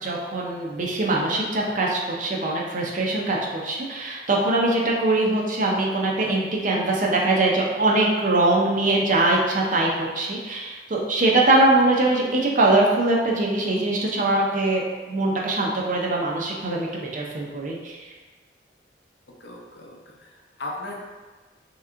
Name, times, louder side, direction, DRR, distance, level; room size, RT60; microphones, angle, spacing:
voice 1, 0.0-18.0, right 2 dB, 45° right, -2 dB, 0.6 m, -22 dB
voice 2, 19.4-21.0, left 2 dB, 60° left, -1 dB, 0.7 m, -37 dB
3.3 x 2.9 x 3.7 m, 1.3 s
head